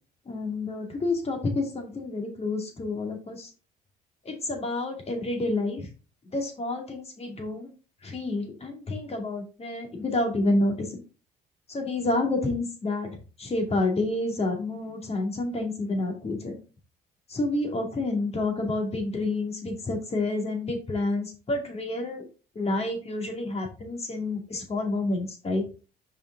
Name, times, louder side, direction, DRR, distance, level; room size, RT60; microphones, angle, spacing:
voice 1, 0.3-3.5 4.2-5.9 6.3-7.7 8.0-10.9 11.7-13.1 13.4-16.6 17.3-22.2 22.6-25.6, left 2 dB, 35° left, 3 dB, 2.6 m, -29 dB
5.4 x 5.2 x 4.0 m, 0.34 s
supercardioid pair, 75°, 19 cm